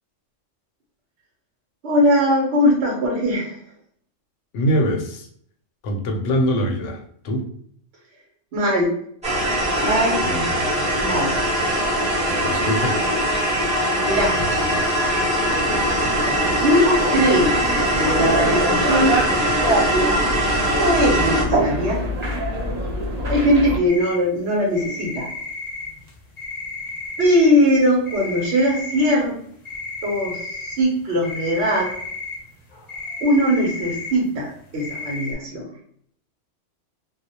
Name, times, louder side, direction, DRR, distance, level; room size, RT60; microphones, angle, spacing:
voice 1, 1.8-3.6 8.5-8.9 9.8-10.3 11.0-11.4 14.0-14.4 16.6-17.6 17.9-20.2 20.8-22.0 23.3-25.3 27.2-29.4 30.0-31.9 33.2-35.7, equal, 60° right, -2 dB, 0.9 m, -20 dB
voice 2, 4.5-5.3 5.8-7.5 10.2-10.7 12.4-13.0, equal, 75° left, 3 dB, 0.9 m, -23 dB
sound 1, 9.2-21.4, equal, 5° right, 0.8 m, -21 dB
sound 2, 15.4-23.8, right 1 dB, 40° right, 0.6 m, -26 dB
sound 3, 23.9-24.2 24.8-27.6 27.9-29.3 29.7-34.2 34.6-35.3, left 3 dB, 45° left, 0.6 m, -33 dB
2.4 x 2.0 x 2.7 m, 0.63 s
omnidirectional pair, 1.3 m